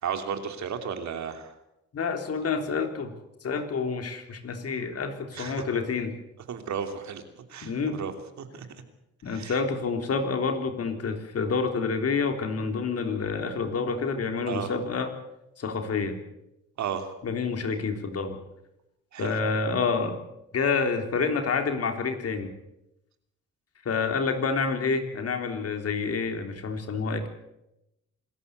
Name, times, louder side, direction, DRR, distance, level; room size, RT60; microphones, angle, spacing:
voice 1, 0.0-1.6 5.3-5.6 6.5-8.7 9.3-9.6 14.5-14.7 16.8-17.1 19.1-19.4, right 7 dB, 65° right, 7 dB, 3.1 m, -34 dB
voice 2, 1.9-3.1 3.4-6.1 7.6-8.0 9.2-15.1 15.6-16.2 17.2-18.4 19.2-20.2 20.5-22.5 23.9-27.3, left 4 dB, 55° left, 6 dB, 3.6 m, -28 dB
26.0 x 14.0 x 8.2 m, 0.88 s
cardioid pair, 90°, 30 cm